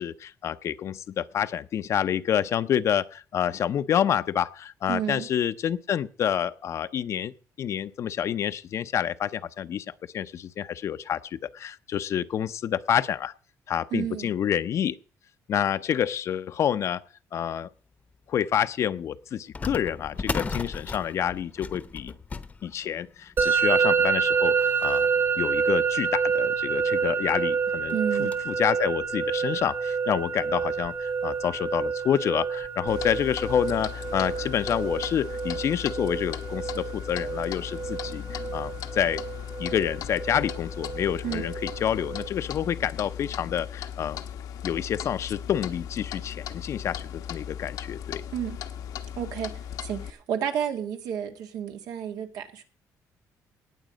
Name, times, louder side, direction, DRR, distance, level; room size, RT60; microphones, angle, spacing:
voice 1, 0.0-9.9 10.1-13.3 13.7-15.0 15.5-17.0 17.3-17.7 18.3-22.1 22.6-25.1 25.4-39.2 39.6-44.2 44.6-48.2, left 9 dB, 50° left, 14 dB, 0.7 m, -28 dB
voice 2, 4.9-5.3 13.9-14.3 27.9-28.4 41.2-41.5 48.3-48.6 49.2-49.5 49.8-52.6, right 9 dB, 85° right, 5 dB, 1.9 m, -31 dB
sound 1, 18.1-18.2 19.5-26.5 27.1-27.2 27.4-27.5 27.9-28.6 29.1-29.2 30.1-30.2 30.5-30.7 32.0-32.3 32.7-32.8 33.4-33.6, left 4 dB, 25° left, 0.9 m, -38 dB
Musical instrument, 23.4-42.3, right 6 dB, 35° right, 1.3 m, -28 dB
Clock, 32.9-50.1, left 9 dB, 90° left, 1.3 m, -37 dB
18.5 x 7.5 x 5.1 m, 0.37 s
cardioid pair, 150°, 6 cm